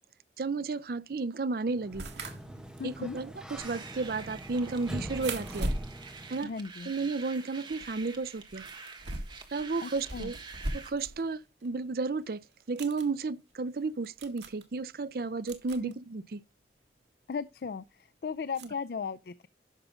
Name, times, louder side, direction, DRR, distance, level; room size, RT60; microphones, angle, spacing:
voice 1, 0.4-2.0 2.8-5.7 6.3-6.5 6.9-8.6 9.5-10.3 10.7-16.4, right 3 dB, 55° right, 0.5 m, -33 dB
Sliding door, 1.7-6.5, right 1 dB, 5° right, 1.5 m, -43 dB
sound 1, 1.9-7.4 7.7-11.3 11.6-11.7 12.5-13.1 13.7-13.8 14.0-14.6 15.5-15.9 17.3-17.4 18.5-18.7, right 1 dB, 80° right, 1.9 m, -40 dB
voice 2, 2.8-3.2 6.4-6.9 9.8-10.3 15.7-15.9 17.3-19.5, left 5 dB, 60° left, 0.4 m, -37 dB
sound 2, 3.6-10.9, right 4 dB, 25° right, 1.5 m, -47 dB
11.0 x 6.2 x 3.6 m
head